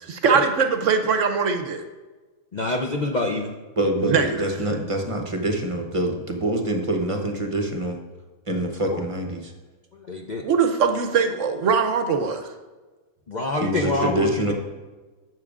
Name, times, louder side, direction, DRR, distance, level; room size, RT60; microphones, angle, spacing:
voice 1, 0.0-1.8 4.0-4.5 10.4-12.5, right 5 dB, 65° right, 6 dB, 0.9 m, -21 dB
voice 2, 2.5-3.5 8.9-9.0 9.9-10.4 13.3-14.5, left 2 dB, 50° left, 1 dB, 0.5 m, -26 dB
voice 3, 3.8-8.0 8.5-9.5 13.6-14.5, right 1 dB, 30° right, 3 dB, 0.7 m, -25 dB
12.0 x 7.7 x 2.4 m, 1.3 s
omnidirectional pair, 1.5 m